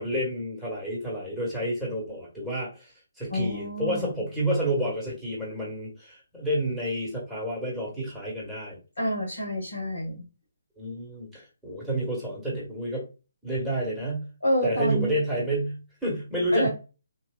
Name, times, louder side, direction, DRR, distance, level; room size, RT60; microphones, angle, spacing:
voice 1, 0.0-2.9 3.2-8.8 10.8-13.0 13.4-14.3 14.6-16.7, right 1 dB, ahead, -7 dB, 1.5 m, -30 dB
voice 2, 3.3-4.1 9.0-10.2 14.4-15.1 16.5-16.7, equal, 70° left, -3 dB, 1.5 m, -27 dB
3.8 x 2.8 x 2.3 m, 0.31 s
figure-of-eight pair, 145°, 0 cm